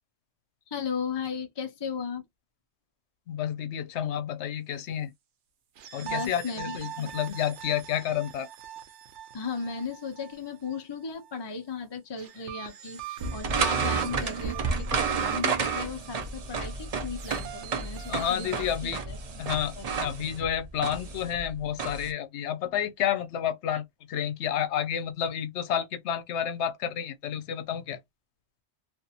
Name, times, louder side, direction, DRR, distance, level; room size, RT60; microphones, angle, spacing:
voice 1, 0.7-2.2 6.0-7.3 9.3-19.2 19.7-20.1, left 5 dB, 30° left, 0.5 m, -36 dB
voice 2, 3.3-5.1 5.9-8.5 13.7-13.9 18.1-19.0 19.4-19.7 20.0-28.0, left 9 dB, 85° left, 0.9 m, -30 dB
sound 1, 5.8-11.3 12.2-18.8, right 11 dB, 85° right, 0.9 m, -44 dB
sound 2, 13.2-22.1, right 5 dB, 45° right, 0.5 m, -31 dB
2.7 x 2.5 x 2.4 m
omnidirectional pair, 1.1 m